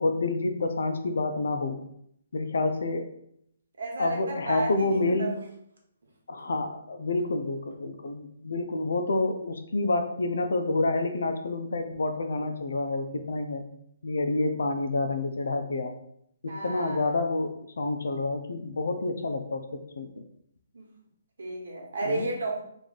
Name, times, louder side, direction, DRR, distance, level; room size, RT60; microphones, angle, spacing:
voice 1, 0.0-1.8 2.3-3.1 4.0-5.3 6.3-13.6 14.0-16.0 16.4-20.1 22.0-22.3, left 2 dB, 75° left, 6 dB, 0.6 m, -28 dB
voice 2, 3.8-5.4 16.5-17.1 20.7-20.9 21.4-22.6, right 2 dB, 80° right, -1 dB, 1.2 m, -33 dB
3.1 x 2.6 x 4.0 m, 0.71 s
hypercardioid pair, 170°, 0 cm